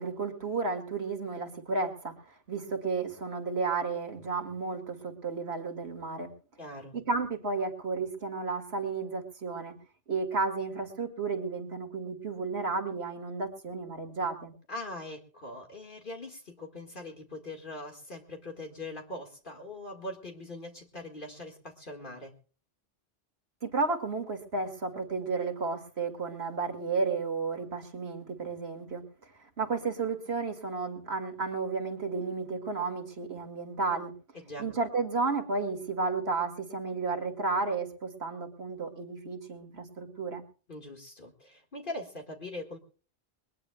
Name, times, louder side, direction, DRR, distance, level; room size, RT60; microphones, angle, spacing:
voice 1, 0.0-6.3 6.9-9.7 10.1-14.5 23.6-34.1 34.6-40.4, right 4 dB, 75° right, 6 dB, 2.5 m, -32 dB
voice 2, 6.6-7.0 14.7-22.3 34.3-34.7 40.7-42.8, left 2 dB, 55° left, 2 dB, 2.0 m, -42 dB
22.0 x 19.5 x 2.3 m, 0.37 s
omnidirectional pair, 1.1 m